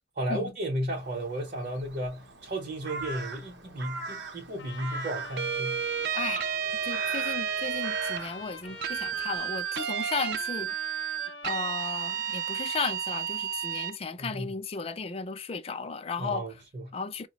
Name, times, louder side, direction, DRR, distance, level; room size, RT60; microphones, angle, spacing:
voice 1, 0.2-5.8 14.2-14.5 16.2-16.9, right 1 dB, 45° right, 0.7 m, -34 dB
Crow, 0.9-9.4, right 3 dB, 80° right, 0.7 m, -42 dB
Trumpet, 4.6-13.1, left 4 dB, 80° left, 0.7 m, -45 dB
sound 1, 5.4-8.2 8.8-14.0, right 9 dB, 60° right, 0.3 m, -31 dB
voice 2, 6.1-6.5 6.8-10.7 11.4-16.5 16.9-17.3, left 4 dB, 30° left, 0.3 m, -35 dB
4.6 x 2.0 x 2.9 m
head